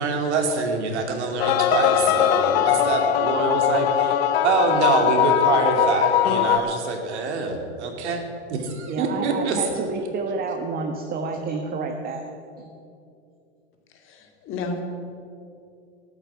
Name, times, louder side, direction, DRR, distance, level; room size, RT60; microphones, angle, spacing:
voice 1, 0.0-4.1 4.4-8.2 8.5-9.6, right 4 dB, 70° right, 3 dB, 2.7 m, -25 dB
sound 1, 1.4-6.6, left 11 dB, 55° left, 0.9 m, -21 dB
voice 2, 8.9-12.3 12.6-12.7, right 4 dB, 25° right, 4 dB, 1.2 m, -29 dB
voice 3, 13.9-14.8, left 3 dB, 35° left, 4 dB, 2.2 m, -32 dB
13.5 x 9.0 x 8.2 m, 2.5 s
hypercardioid pair, 115°, 35 cm